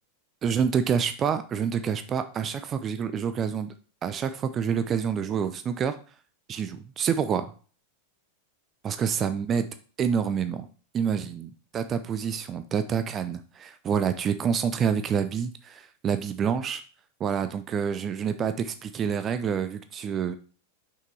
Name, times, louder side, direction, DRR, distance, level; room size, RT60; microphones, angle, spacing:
voice 1, 0.4-3.7 4.0-6.0 6.5-7.5 8.8-9.7 10.0-10.7 10.9-16.8 17.2-20.4, right 7 dB, 25° right, 10 dB, 0.6 m, -27 dB
5.9 x 5.9 x 4.4 m, 0.39 s
figure-of-eight pair, 90°, 0 cm